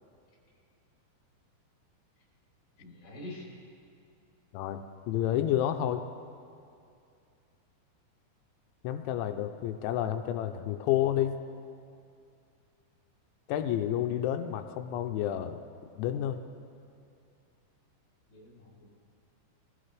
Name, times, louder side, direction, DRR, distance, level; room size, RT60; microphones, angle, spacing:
voice 1, 2.8-3.5 18.3-18.9, left 2 dB, 30° left, -4 dB, 4.4 m, -45 dB
voice 2, 4.5-6.0 8.8-11.4 13.5-15.6 16.0-16.4, left 11 dB, 85° left, 7 dB, 2.9 m, -30 dB
22.0 x 15.5 x 3.4 m, 2.5 s
omnidirectional pair, 5.3 m